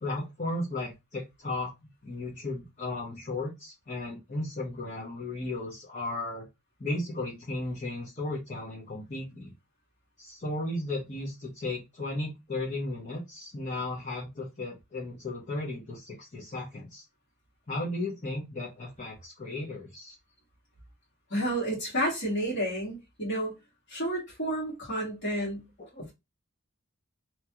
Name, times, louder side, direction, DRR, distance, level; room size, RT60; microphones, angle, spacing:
voice 1, 0.0-1.7 2.0-6.5 6.8-9.5 10.2-17.0 17.7-20.2 25.9-26.0, left 2 dB, 35° left, 0.9 m, -35 dB
voice 2, 21.3-23.6 23.9-25.7, right 1 dB, 55° left, 1.7 m, -30 dB
3.0 x 2.3 x 2.8 m
head